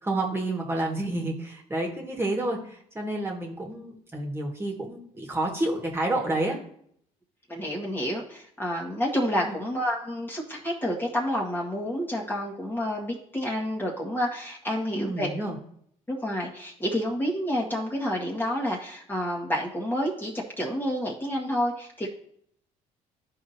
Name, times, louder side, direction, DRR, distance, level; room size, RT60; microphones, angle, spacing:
voice 1, 0.0-6.6 9.4-9.6 14.9-15.6, right 2 dB, 15° right, -1 dB, 1.9 m, -29 dB
voice 2, 7.5-15.3 16.1-22.1, equal, 15° left, -3 dB, 1.8 m, -29 dB
12.5 x 4.8 x 2.9 m, 0.66 s
cardioid pair, 90°, 15 cm